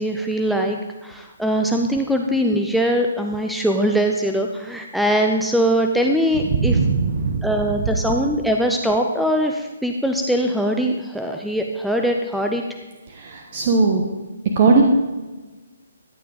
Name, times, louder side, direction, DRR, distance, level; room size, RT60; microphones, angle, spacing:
voice 1, 0.0-6.8 7.4-12.6, equal, ahead, 2 dB, 0.6 m, -21 dB
voice 2, 6.5-7.4 13.2-14.0 14.6-14.8, right 4 dB, 40° right, 2 dB, 1.1 m, -18 dB
14.0 x 9.3 x 3.9 m, 1.2 s
figure-of-eight pair, 135°, 0 cm